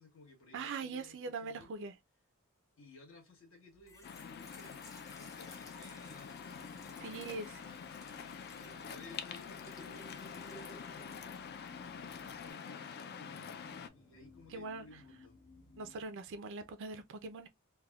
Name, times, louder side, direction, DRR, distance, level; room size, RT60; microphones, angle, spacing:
voice 1, 0.0-1.8 2.8-4.9 5.2-15.4, left 2 dB, 65° left, 1.2 m, -58 dB
voice 2, 0.5-1.9 7.0-7.6 8.4-8.5 14.5-14.9 15.8-17.5, right 4 dB, 55° right, 0.4 m, -42 dB
Trickle dribble / Fill (with liquid), 3.7-12.5, equal, 15° left, 0.6 m, -57 dB
Waves surf, 4.0-13.9, left 6 dB, 45° left, 0.3 m, -46 dB
sound 1, 5.7-16.0, left 3 dB, 80° left, 1.0 m, -61 dB
3.3 x 2.2 x 2.2 m
head